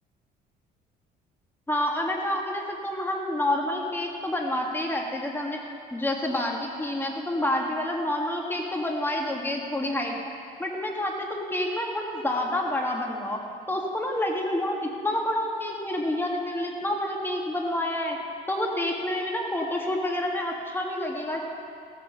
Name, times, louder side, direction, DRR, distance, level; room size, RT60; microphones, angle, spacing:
voice 1, 1.7-5.6 5.9-10.1 10.6-13.4 13.7-18.2 18.5-21.5, left 1 dB, 10° left, 0 dB, 1.8 m, -28 dB
16.0 x 7.5 x 6.6 m, 2.6 s
cardioid pair, 110°, 17 cm